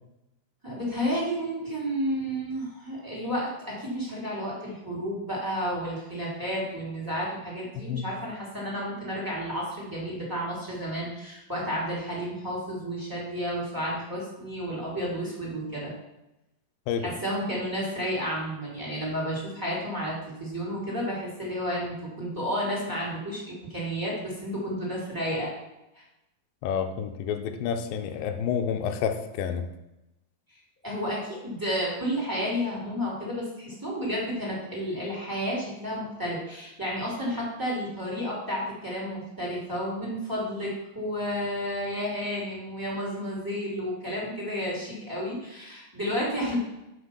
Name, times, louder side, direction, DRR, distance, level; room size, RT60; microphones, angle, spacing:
voice 1, 0.6-15.9 17.0-20.1 20.4-25.5 25.9-26.0 30.8-46.6, equal, 5° right, -6 dB, 2.6 m, -31 dB
voice 2, 26.6-29.7, left 7 dB, 80° left, 6 dB, 2.4 m, -29 dB
7.9 x 6.1 x 5.7 m, 0.92 s
omnidirectional pair, 4.1 m